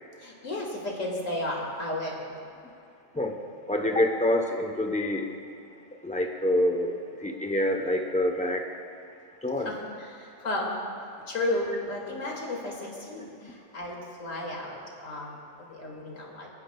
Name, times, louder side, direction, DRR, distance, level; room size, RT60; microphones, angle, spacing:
voice 1, 0.2-2.4 9.6-9.8 10.0-10.8 11.3-16.5, left 1 dB, 80° left, -2 dB, 2.5 m, -33 dB
voice 2, 3.7-5.3 6.0-8.7 9.4-9.7, left 1 dB, 5° left, 2 dB, 0.6 m, -26 dB
25.5 x 9.6 x 2.3 m, 2.5 s
omnidirectional pair, 1.4 m